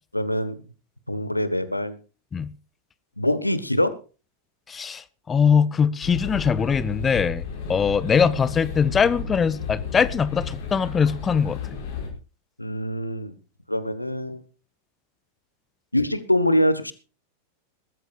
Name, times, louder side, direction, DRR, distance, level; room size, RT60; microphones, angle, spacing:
voice 1, 0.1-0.6 1.1-2.0 3.2-4.0 12.6-13.3 13.7-14.4 15.9-16.9, left 1 dB, 85° left, 1.3 m, -24 dB
voice 2, 4.7-7.4 7.7-11.6, left 6 dB, 20° left, 0.7 m, -22 dB
sound 1, 6.0-12.1, left 6 dB, 50° left, 5.6 m, -33 dB
21.0 x 13.5 x 2.5 m
figure-of-eight pair, 90°, 0 cm